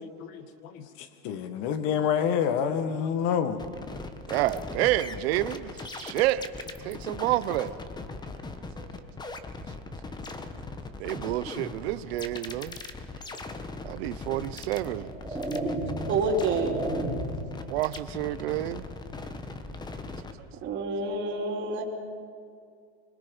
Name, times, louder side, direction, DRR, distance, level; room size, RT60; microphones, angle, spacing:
voice 1, 0.0-3.6, left 8 dB, 55° left, 1.7 m, -28 dB
sound 1, 3.6-20.3, left 3 dB, 15° left, 1.2 m, -40 dB
voice 2, 4.3-6.5 6.8-7.8 11.0-12.8 13.8-15.1 17.7-18.8, right 15 dB, 75° right, 0.8 m, -29 dB
sound 2, 13.9-14.0 14.8-17.5, right 1 dB, 10° right, 3.0 m, -33 dB
voice 3, 16.1-16.8 20.6-21.8, right 3 dB, 35° right, 3.3 m, -28 dB
25.5 x 21.5 x 5.4 m
supercardioid pair, 140°, 31 cm